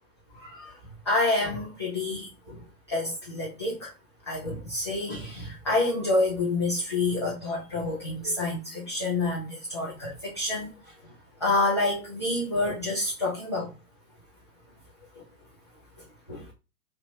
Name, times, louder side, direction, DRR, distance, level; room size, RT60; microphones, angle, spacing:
voice 1, 0.3-0.7 1.1-2.6 2.9-3.9 4.3-10.7 11.4-13.7 16.3-16.4, left 2 dB, 20° left, 0.3 m, -28 dB
3.0 x 2.9 x 2.5 m
figure-of-eight pair, 125°, 46 cm